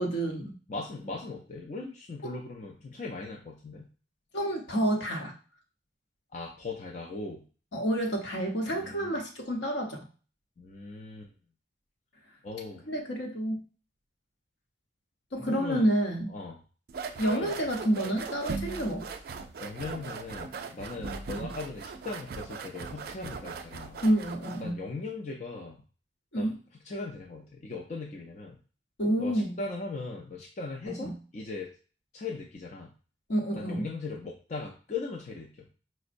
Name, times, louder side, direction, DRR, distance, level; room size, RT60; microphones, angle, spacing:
voice 1, 0.0-0.6 4.3-5.3 7.7-10.0 12.9-13.6 15.3-16.3 17.2-19.1 24.0-24.8 26.3-26.6 29.0-29.6 30.9-31.1 33.3-33.8, right 1 dB, 65° left, 1 dB, 0.8 m, -29 dB
voice 2, 0.7-3.9 6.3-7.4 8.7-9.2 10.6-11.3 12.4-12.9 15.5-15.9 16.3-16.6 17.3-17.6 19.6-24.0 24.6-25.8 26.4-28.6 29.2-31.7 32.1-32.9 33.5-35.7, left 3 dB, 35° left, 0 dB, 0.4 m, -39 dB
sound 1, 16.9-24.7, right 4 dB, 50° right, 0.3 m, -39 dB
5.0 x 2.0 x 2.5 m, 0.37 s
head